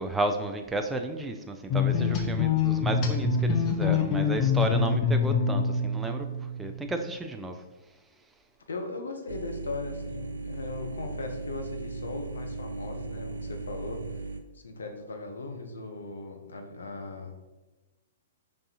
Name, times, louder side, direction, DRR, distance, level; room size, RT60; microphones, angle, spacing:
voice 1, 0.0-6.3 6.6-7.6, right 2 dB, 10° right, 5 dB, 0.3 m, -32 dB
sound 1, 1.7-6.9, left 5 dB, 35° left, 0.7 m, -25 dB
voice 2, 8.7-14.2 14.5-17.4, left 3 dB, 80° left, 4 dB, 0.7 m, -38 dB
sound 2, 9.3-14.4, right 3 dB, 80° right, 0.5 m, -37 dB
5.3 x 3.5 x 2.8 m, 1.1 s
hypercardioid pair, 120°, 0 cm